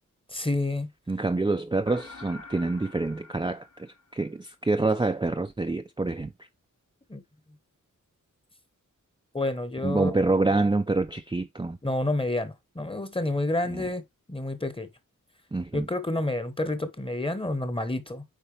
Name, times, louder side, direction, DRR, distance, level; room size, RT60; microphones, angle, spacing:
voice 1, 0.3-0.9 7.1-7.2 9.3-10.1 11.8-14.0 14.3-14.9 15.7-18.2, left 2 dB, 15° left, 1.1 m, -29 dB
voice 2, 1.1-6.3 9.8-11.8 13.7-13.9 15.5-15.9, right 3 dB, 15° right, 0.5 m, -27 dB
sound 1, 1.9-4.5, left 3 dB, 50° left, 1.3 m, -47 dB
9.0 x 4.1 x 3.3 m
wide cardioid pair, 105°, 32 cm